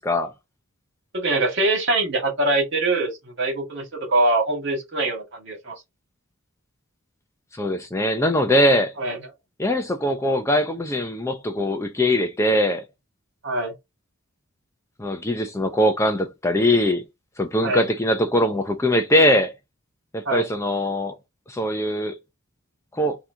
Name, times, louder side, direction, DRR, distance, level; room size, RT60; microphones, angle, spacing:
voice 1, 1.1-5.8 9.0-9.2 13.4-13.7 17.6-17.8 20.3-20.5, right 2 dB, 55° right, 2.1 m, -23 dB
voice 2, 7.6-8.9 9.6-12.8 15.0-17.0 17.4-19.5 20.1-21.2 21.5-22.2 22.9-23.2, left 1 dB, 15° left, 0.6 m, -21 dB
3.8 x 2.9 x 4.5 m
head